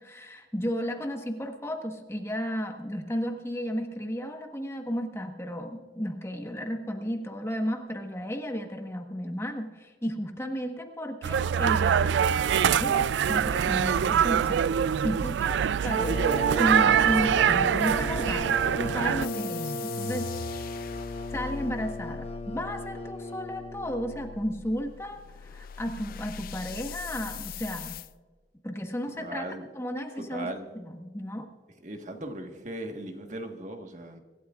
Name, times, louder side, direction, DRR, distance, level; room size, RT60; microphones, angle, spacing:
voice 1, 0.0-12.1 12.6-16.2 16.6-20.8 21.3-28.0 28.6-29.4 29.7-30.5 30.7-31.5, equal, 15° left, 4 dB, 1.3 m, -33 dB
sound 1, 11.2-19.3, right 8 dB, 90° right, 0.3 m, -24 dB
sound 2, 16.0-24.4, equal, 35° left, 1.1 m, -35 dB
sound 3, 19.2-28.1, left 6 dB, 55° left, 0.4 m, -41 dB
voice 2, 29.2-29.7 30.2-30.7 31.8-34.2, right 1 dB, 45° right, 4 dB, 1.4 m, -38 dB
25.0 x 12.5 x 2.4 m, 1.4 s
head